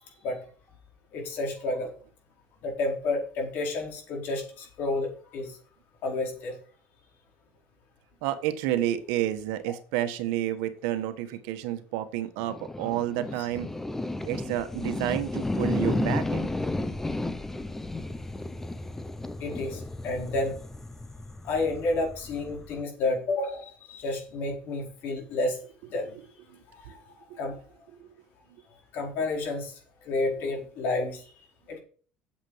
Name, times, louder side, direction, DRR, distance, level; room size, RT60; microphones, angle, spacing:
voice 1, 1.1-1.9 2.6-5.6 6.0-6.6 19.4-20.5 21.4-25.6 25.9-26.1 26.8-27.6 28.9-31.3 31.7-31.8, left 2 dB, 60° left, 0 dB, 4.7 m, -30 dB
voice 2, 8.2-13.7 14.2-16.5 25.9-26.6 26.9-27.0 27.3-27.4 27.9-28.1, right 12 dB, 85° right, 10 dB, 1.4 m, -30 dB
sound 1, 12.4-22.8, left 2 dB, 10° left, 0.7 m, -33 dB
8.8 x 7.6 x 5.7 m, 0.44 s
cardioid pair, 130°, 4 cm